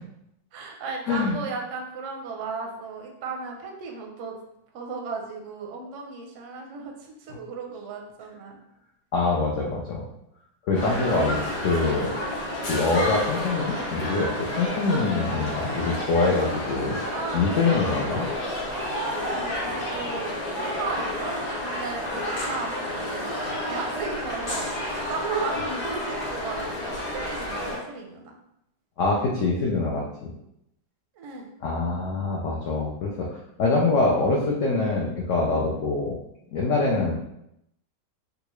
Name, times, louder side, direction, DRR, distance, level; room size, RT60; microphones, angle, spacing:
voice 1, 0.5-4.4 4.7-8.6 17.1-17.9 18.7-21.4 21.6-28.3 31.2-31.5, right 4 dB, 65° right, 1 dB, 0.7 m, -35 dB
voice 2, 1.1-1.4 9.1-10.0 10.7-12.1 12.6-17.0 17.3-18.3 29.0-30.3 31.6-33.3 33.6-36.2 36.5-37.1, left 3 dB, 85° left, -2 dB, 0.6 m, -24 dB
sound 1, 10.7-27.8, left 1 dB, 60° left, 1.2 m, -30 dB
3.8 x 2.3 x 3.0 m, 0.81 s
omnidirectional pair, 1.9 m